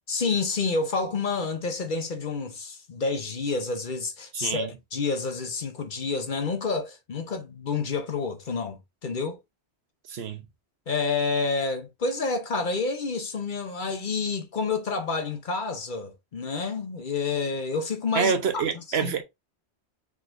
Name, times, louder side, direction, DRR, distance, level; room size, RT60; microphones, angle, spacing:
voice 1, 0.1-9.4 10.9-18.6 18.9-19.2, left 4 dB, 50° left, 0.9 m, -29 dB
voice 2, 4.3-4.7 10.1-10.4 18.1-19.2, right 6 dB, 70° right, 1.1 m, -26 dB
4.8 x 4.0 x 2.5 m
omnidirectional pair, 1.1 m